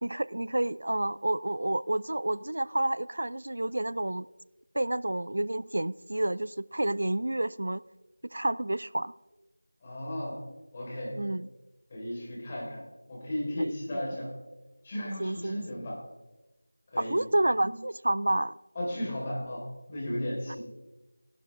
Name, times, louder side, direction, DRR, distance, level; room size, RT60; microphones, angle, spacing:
voice 1, 0.0-4.3 4.7-7.8 8.3-9.1 11.2-11.5 13.6-14.0 15.2-15.6 17.0-18.5, right 1 dB, 65° right, 19 dB, 0.3 m, -29 dB
voice 2, 9.8-10.4 10.7-11.2 11.9-14.3 14.8-16.0 16.9-17.2 18.7-20.6, left 1 dB, 25° left, -4 dB, 4.6 m, -35 dB
17.0 x 12.0 x 3.7 m, 1.1 s
figure-of-eight pair, 170°, 0 cm